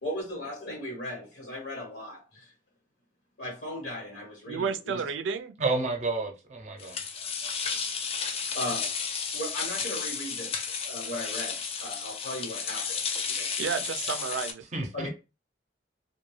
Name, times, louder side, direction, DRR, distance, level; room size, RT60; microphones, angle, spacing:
voice 1, 0.0-2.5 3.4-5.0 7.2-7.8 8.5-8.9 9.3-13.0 13.3-13.5 14.9-15.1, left 1 dB, 70° left, 1.1 m, -37 dB
voice 2, 4.5-5.6 13.6-14.6, right 6 dB, 85° right, 0.4 m, -31 dB
voice 3, 5.6-7.0 14.7-15.1, right 3 dB, 40° right, 0.6 m, -30 dB
sound 1, 6.8-14.5, left 6 dB, 35° left, 0.3 m, -33 dB
2.3 x 2.2 x 3.1 m
head